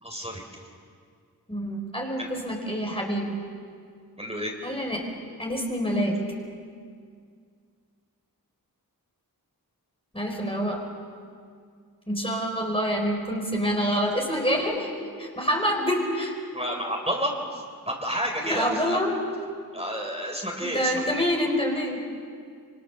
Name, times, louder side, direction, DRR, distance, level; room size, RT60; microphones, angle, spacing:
voice 1, 0.0-0.6 2.2-2.3 4.2-4.5 16.5-19.0 19.7-21.2, equal, 15° right, 0 dB, 4.3 m, -30 dB
voice 2, 1.5-3.4 4.6-5.1 5.4-6.2 10.1-10.8 12.1-16.3 18.4-19.3 20.6-22.0, equal, 15° left, 0 dB, 4.3 m, -27 dB
26.5 x 24.5 x 6.9 m, 2.2 s
wide cardioid pair, 45°, 37 cm